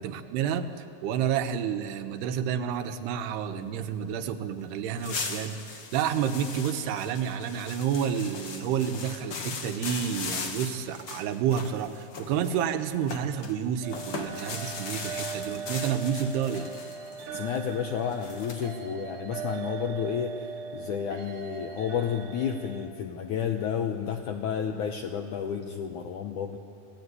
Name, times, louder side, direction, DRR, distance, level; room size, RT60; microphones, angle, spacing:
voice 1, 0.0-16.7, right 8 dB, 80° right, 8 dB, 3.1 m, -30 dB
sound 1, 4.6-4.7 5.0-13.5 13.9-18.7, left 5 dB, 45° left, 1.9 m, -39 dB
sound 2, 13.8-22.9, right 6 dB, 65° right, 2.4 m, -39 dB
voice 2, 17.3-26.6, left 8 dB, 75° left, 5 dB, 1.8 m, -31 dB
25.5 x 16.5 x 9.6 m, 2.7 s
omnidirectional pair, 4.7 m